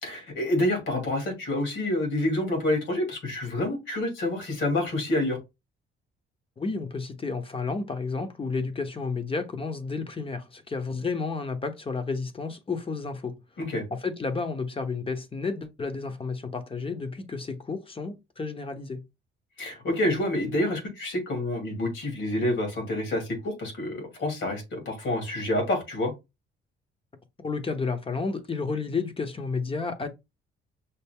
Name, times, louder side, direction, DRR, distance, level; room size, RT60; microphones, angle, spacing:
voice 1, 0.0-5.4 13.6-13.8 19.6-26.1, left 1 dB, 75° left, 2.5 m, -28 dB
voice 2, 6.6-13.4 14.0-19.0 27.4-30.1, left 4 dB, 25° left, 0.9 m, -31 dB
5.7 x 2.0 x 3.5 m
cardioid pair, 90°, 20 cm